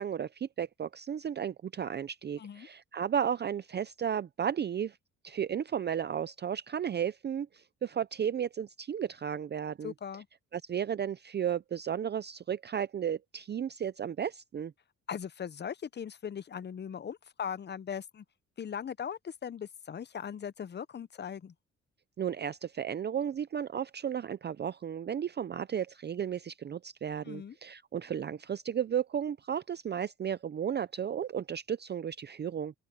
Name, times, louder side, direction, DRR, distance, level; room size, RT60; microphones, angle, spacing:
voice 1, 0.0-5.0 5.2-9.9 10.5-14.7 22.2-32.7, right 8 dB, 35° right, 0.5 m, -34 dB
voice 2, 2.4-2.7 9.8-10.3 15.1-18.2 18.6-21.5 27.2-27.6, left 8 dB, 35° left, 0.8 m, -39 dB
open air
cardioid pair, 90°, 30 cm